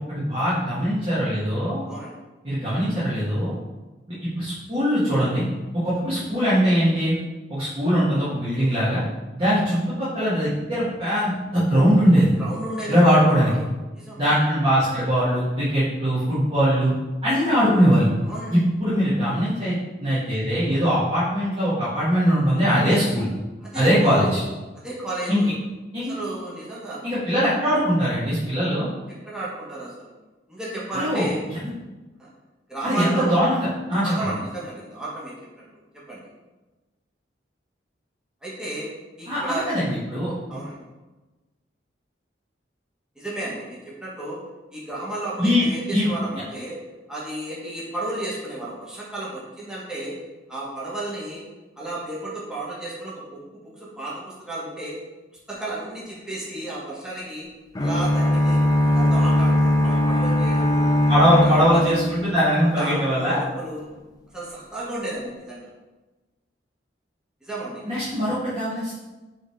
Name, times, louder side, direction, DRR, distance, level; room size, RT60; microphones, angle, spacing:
voice 1, 0.1-1.8 2.4-3.5 4.4-5.4 5.8-7.1 7.5-9.0 9.3-12.3 12.9-13.5 14.2-16.9 17.2-18.1 18.5-19.8 20.0-23.2 23.7-24.4 25.3-25.4 25.9-26.1 27.0-28.9 30.9-31.3 32.8-34.3 39.3-40.6 45.4-45.6 45.9-46.1 61.1-63.4 67.8-68.9, equal, 30° right, -12 dB, 1.8 m, -21 dB
voice 2, 1.9-2.2 12.4-13.6 13.9-14.2 18.2-18.6 22.9-23.3 23.6-24.3 24.7-25.5 26.0-27.0 29.2-30.1 30.5-31.4 32.2-32.3 32.7-33.4 33.9-35.6 36.1-36.2 38.4-38.9 39.2-39.7 40.5-40.8 43.1-44.4 44.7-46.8 47.1-50.2 50.5-51.4 51.8-53.2 53.5-55.0 55.5-57.5 57.8-58.6 58.9-60.9 61.4-61.9 62.6-63.9 64.3-65.7 67.4-67.8, right 2 dB, 5° right, -8 dB, 1.5 m, -33 dB
sound 1, 57.8-62.7, left 1 dB, 20° left, 0.5 m, -20 dB
5.5 x 3.7 x 4.7 m, 1.2 s
head